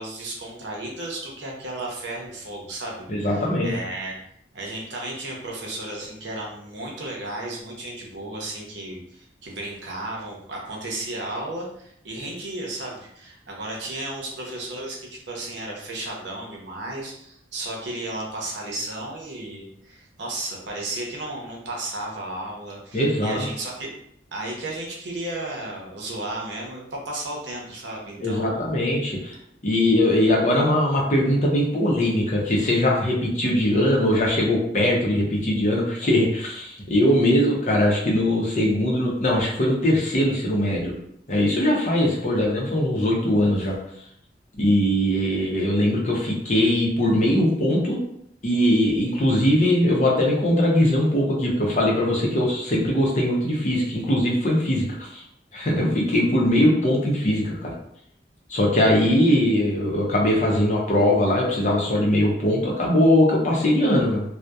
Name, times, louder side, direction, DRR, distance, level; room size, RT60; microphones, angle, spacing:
voice 1, 0.0-4.2 4.5-23.9 24.3-28.7, right 2 dB, 80° right, -2 dB, 0.7 m, -34 dB
voice 2, 3.1-3.7 22.9-23.5 28.2-29.3 29.6-40.9 41.3-43.8 44.6-48.0 48.4-55.2 55.5-57.7 58.5-64.2, left 1 dB, 40° left, -2 dB, 0.6 m, -21 dB
2.7 x 2.1 x 2.2 m, 0.72 s
head